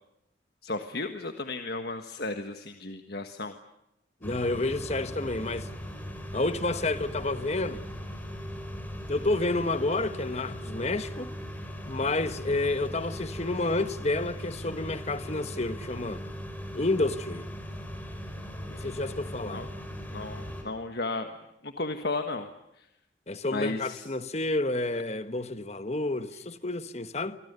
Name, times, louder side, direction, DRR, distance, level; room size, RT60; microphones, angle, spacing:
voice 1, 0.6-3.5 18.7-19.0 19.5-19.7 20.1-21.3 21.6-22.5 22.8-22.9 23.5-24.0, left 2 dB, 55° left, 1.5 m, -34 dB
voice 2, 4.2-5.7 6.3-7.8 9.1-11.3 11.9-16.2 16.7-17.5 18.7-19.6 23.3-27.4, left 2 dB, 35° left, 1.3 m, -30 dB
sound 1, 4.2-20.6, equal, 10° left, 4.7 m, -39 dB
27.5 x 25.0 x 6.9 m
head